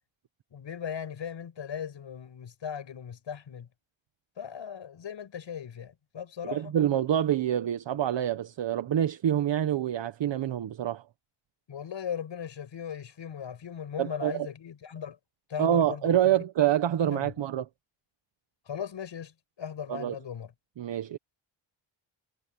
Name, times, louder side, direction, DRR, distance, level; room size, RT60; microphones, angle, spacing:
voice 1, 0.5-3.7 4.4-6.7 11.7-15.2 15.5-16.4 17.0-17.3 18.7-20.5, left 8 dB, 60° left, 6.4 m, -38 dB
voice 2, 6.5-11.0 14.0-14.5 15.6-17.6 19.9-20.1 20.8-21.2, right 10 dB, 60° right, 1.1 m, -26 dB
wide cardioid pair, 160°, 49 cm